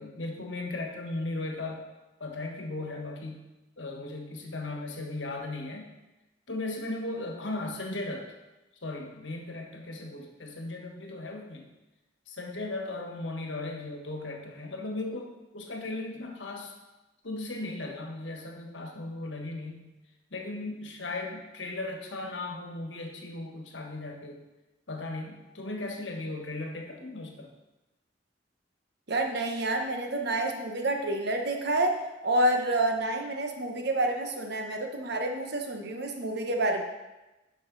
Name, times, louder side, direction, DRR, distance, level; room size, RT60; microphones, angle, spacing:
voice 1, 0.0-1.8 2.2-3.5 3.8-5.9 6.5-8.3 8.8-11.7 12.3-16.7 17.2-19.9 20.3-24.4 24.9-27.5, left 2 dB, 85° left, 2 dB, 1.4 m, -37 dB
voice 2, 29.1-36.8, right 1 dB, 60° right, 3 dB, 1.1 m, -28 dB
10.5 x 5.4 x 4.0 m, 1.1 s
head